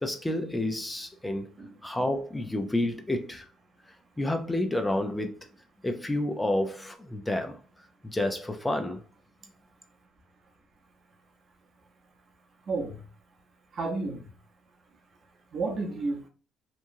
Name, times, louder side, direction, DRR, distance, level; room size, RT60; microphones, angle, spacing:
voice 1, 0.0-1.5 1.8-3.5 4.2-5.5 5.8-7.6 8.1-9.0, left 1 dB, 15° left, 0.4 m, -29 dB
voice 2, 12.7-13.0 13.7-14.3 15.5-16.3, right 3 dB, 50° right, 0.8 m, -31 dB
2.9 x 2.3 x 2.6 m
cardioid pair, 80°, 0 cm